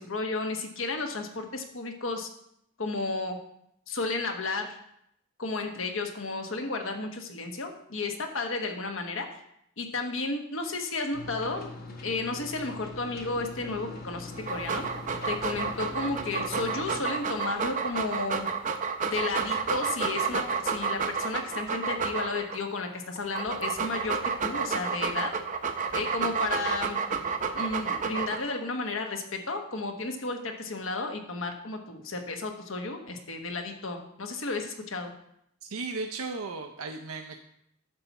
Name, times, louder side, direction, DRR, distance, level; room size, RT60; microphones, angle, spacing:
voice 1, 0.0-2.3 2.8-3.4 3.9-4.8 5.4-9.4 9.8-11.7 12.0-14.8 15.3-18.5 19.1-25.3 25.9-27.0 27.5-35.1, left 3 dB, 70° left, 4 dB, 1.2 m, -33 dB
sound 1, 11.1-17.0, left 2 dB, 45° left, 1.1 m, -42 dB
Dog, 14.4-22.6 23.2-28.6, right 5 dB, 35° right, 0.6 m, -30 dB
voice 2, 35.6-37.4, right 3 dB, 90° right, 4 dB, 0.6 m, -35 dB
10.5 x 4.2 x 7.0 m, 0.76 s
head